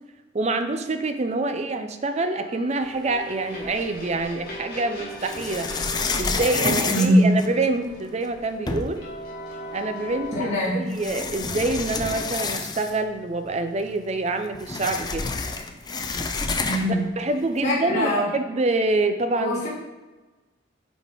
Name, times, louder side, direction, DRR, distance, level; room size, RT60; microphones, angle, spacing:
voice 1, 0.3-5.7 6.2-9.0 9.7-15.3 17.2-19.6, right 2 dB, 35° right, 7 dB, 0.5 m, -26 dB
sound 1, 2.2-10.3, equal, 55° left, 1.8 m, -39 dB
scraping-sandy, 3.6-4.4 5.2-7.9 8.4-8.5 8.7-9.1 10.2-10.3 10.9-13.1 13.4-13.5 13.8-17.0, left 4 dB, 20° left, 0.4 m, -29 dB
voice 2, 6.6-7.3 10.3-10.9 16.6-17.1 17.6-18.3 19.3-19.7, equal, 35° left, -9 dB, 2.0 m, -22 dB
8.1 x 4.1 x 3.5 m, 1.1 s
head